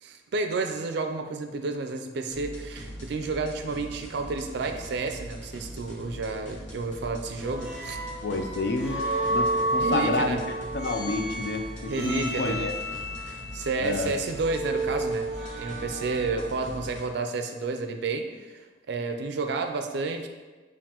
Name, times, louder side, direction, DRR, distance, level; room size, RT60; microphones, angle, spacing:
voice 1, 0.0-8.0 9.8-10.4 11.9-12.7 13.2-15.3 15.6-18.3 18.9-20.3, right 3 dB, 60° right, 6 dB, 0.4 m, -31 dB
sound 1, 2.3-17.1, equal, 75° left, 1.1 m, -42 dB
sound 2, 7.4-16.7, right 1 dB, 10° right, 1.3 m, -32 dB
voice 2, 8.2-10.4 10.7-12.7 13.8-14.1, left 2 dB, 60° left, 5 dB, 0.4 m, -29 dB
7.1 x 2.5 x 2.9 m, 1.3 s
head